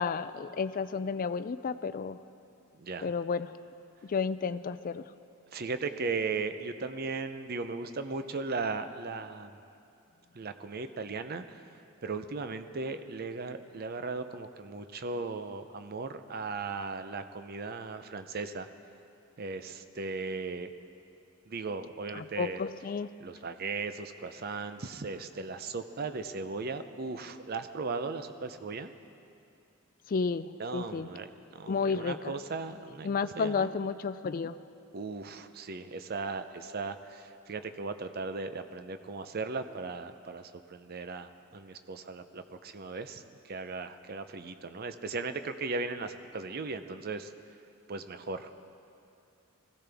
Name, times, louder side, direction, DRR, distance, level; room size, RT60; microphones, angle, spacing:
voice 1, 0.0-2.2 3.0-3.5 4.0-5.0 22.1-23.1 30.1-31.1 31.7-32.3 33.0-34.6, left 5 dB, 40° left, 14 dB, 0.3 m, -32 dB
voice 2, 5.5-9.6 10.3-11.6 12.0-18.7 19.4-20.7 21.5-22.6 23.2-28.9 30.6-33.1 33.4-33.7 34.9-47.3 47.9-48.5, right 4 dB, 45° right, 10 dB, 0.6 m, -37 dB
20.0 x 15.5 x 3.5 m, 2.6 s
head